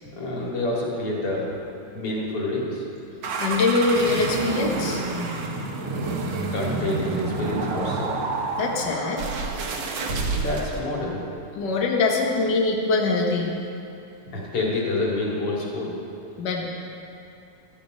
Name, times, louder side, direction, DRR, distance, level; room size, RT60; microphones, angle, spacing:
voice 1, 0.1-1.5 1.9-2.8 6.5-8.2 10.3-11.2 14.3-16.0, left 2 dB, 40° left, -4 dB, 3.2 m, -27 dB
sound 1, 3.2-10.8, right 3 dB, 60° right, 1.9 m, -28 dB
voice 2, 3.4-5.0 8.6-9.2 11.5-13.5 16.4-16.7, left 3 dB, 85° left, 0 dB, 0.9 m, -23 dB
15.5 x 13.0 x 5.2 m, 2.7 s
omnidirectional pair, 4.2 m